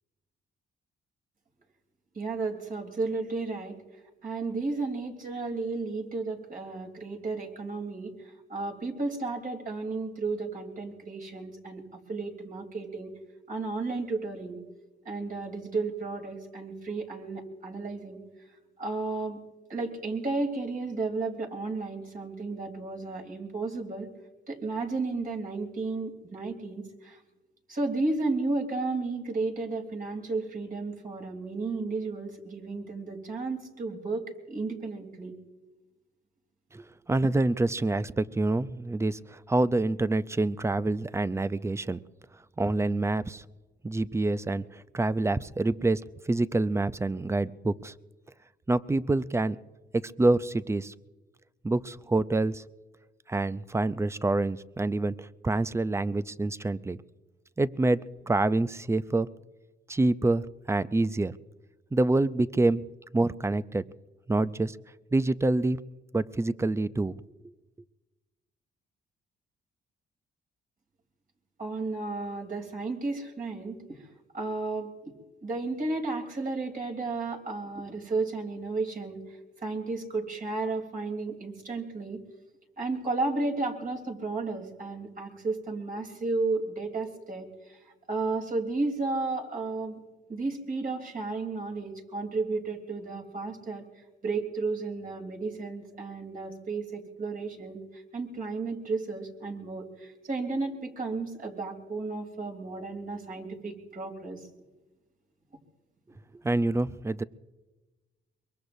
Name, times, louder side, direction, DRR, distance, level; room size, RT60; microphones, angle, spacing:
voice 1, 2.1-3.8 4.2-11.8 12.1-13.1 13.5-14.6 15.0-18.2 18.8-19.4 19.7-24.1 24.5-27.2 27.7-35.3 71.6-73.8 74.3-75.1 75.4-79.2 79.6-82.2 82.8-87.8 88.1-90.0 90.3-93.8 94.2-104.4, right 3 dB, 45° right, 1 dB, 3.4 m, -33 dB
voice 2, 36.7-42.0 42.6-43.4 43.8-47.9 48.7-49.6 49.9-50.9 51.6-52.6 53.3-57.0 57.6-58.0 58.3-59.3 59.9-61.3 61.9-62.9 63.1-63.8 64.3-64.8 65.1-65.8 66.1-67.2 106.4-107.2, right 2 dB, 15° right, 15 dB, 0.5 m, -27 dB
23.5 x 22.5 x 2.7 m, 1.2 s
cardioid pair, 90°, 20 cm